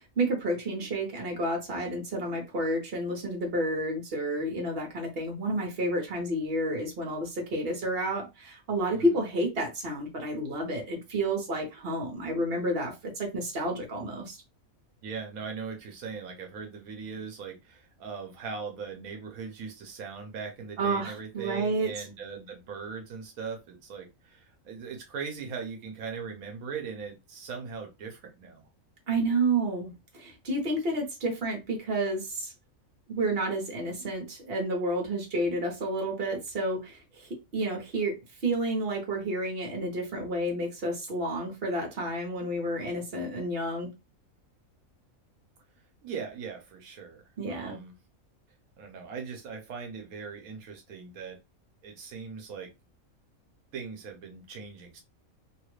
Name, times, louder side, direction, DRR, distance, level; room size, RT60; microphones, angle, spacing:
voice 1, 0.0-14.4 20.8-21.9 29.1-32.5 33.1-38.2 38.4-43.9 47.4-47.8, right 1 dB, 45° right, 1.3 m, -30 dB
voice 2, 15.0-28.6 46.0-47.9 48.8-51.4 51.8-52.7 53.7-55.0, right 5 dB, 85° right, 1.2 m, -40 dB
3.0 x 2.4 x 3.1 m
omnidirectional pair, 1.4 m